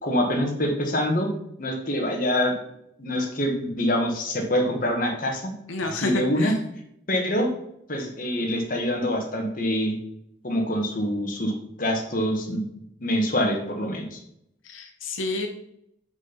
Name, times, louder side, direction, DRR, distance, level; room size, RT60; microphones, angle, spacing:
voice 1, 0.0-1.3 1.6-2.5 3.0-5.5 5.8-6.5 7.1-7.5 7.9-9.9 10.4-11.5 11.8-12.6 13.0-14.2, left 1 dB, 45° left, 2 dB, 1.2 m, -25 dB
voice 2, 5.7-6.6 14.6-15.5, left 2 dB, 90° left, 4 dB, 0.9 m, -29 dB
6.1 x 4.0 x 5.7 m, 0.75 s
head